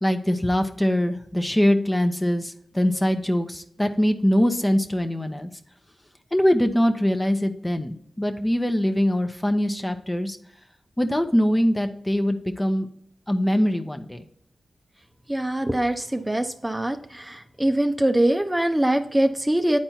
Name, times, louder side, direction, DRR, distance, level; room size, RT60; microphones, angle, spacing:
voice 1, 0.0-5.5 6.3-10.4 11.0-12.9 13.3-14.2, equal, 20° left, 6 dB, 0.8 m, -23 dB
voice 2, 15.3-19.8, right 1 dB, 15° right, 6 dB, 0.7 m, -23 dB
9.0 x 4.3 x 4.3 m, 0.67 s
cardioid pair, 45°, 0 cm